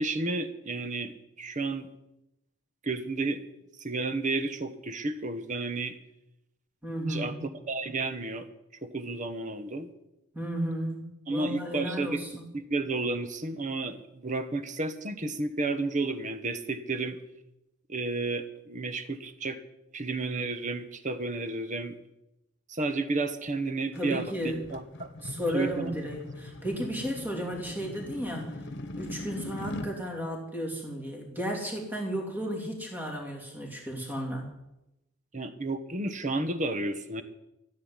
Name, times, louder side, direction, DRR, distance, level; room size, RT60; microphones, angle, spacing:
voice 1, 0.0-1.9 2.8-3.4 3.8-6.0 7.1-7.3 7.7-8.5 8.8-9.9 11.3-12.2 12.5-17.2 17.9-19.6 19.9-21.9 22.7-25.1 25.5-25.9 35.3-37.2, right 3 dB, 35° right, 10 dB, 1.1 m, -32 dB
voice 2, 6.8-7.5 10.3-12.4 23.9-24.7 25.2-28.6 29.0-34.5, equal, 10° right, 0 dB, 2.9 m, -34 dB
sound 1, 23.9-29.9, left 1 dB, 55° left, 1.2 m, -41 dB
14.0 x 7.9 x 9.6 m, 0.90 s
head